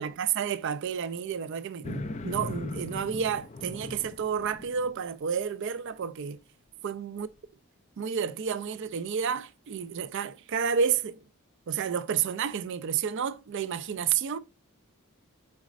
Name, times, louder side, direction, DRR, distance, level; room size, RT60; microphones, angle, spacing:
voice 1, 0.0-6.4 6.8-7.3 8.0-11.2 11.7-14.4, right 7 dB, 55° right, 0.4 m, -30 dB
sound 1, 1.8-4.9, left 3 dB, 30° left, 0.3 m, -38 dB
5.0 x 4.1 x 2.4 m
head